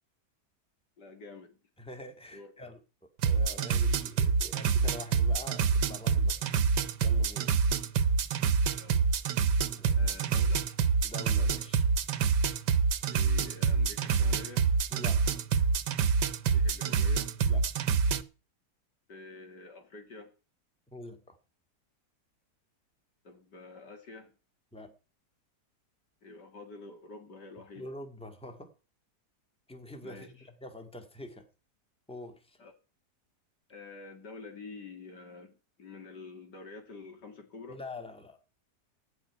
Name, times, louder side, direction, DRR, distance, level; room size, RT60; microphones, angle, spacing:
voice 1, 1.0-1.6 2.3-2.5 8.8-9.1 9.9-10.8 13.1-14.7 16.5-17.4 19.1-20.3 23.2-24.4 26.2-27.9 30.0-30.5 32.6-32.7 33.7-37.8, left 3 dB, 85° left, 4 dB, 3.5 m, -48 dB
voice 2, 1.8-2.8 3.2-6.6 7.0-7.5 9.7-10.2 11.0-11.9 14.9-15.4 17.4-17.6 20.9-21.4 24.7-24.9 27.8-28.7 29.7-31.4 32.1-32.6 37.7-38.4, left 2 dB, 5° left, 5 dB, 2.0 m, -45 dB
sound 1, 3.2-18.2, right 5 dB, 85° right, 1.5 m, -27 dB
16.0 x 5.8 x 9.7 m, 0.35 s
omnidirectional pair, 1.8 m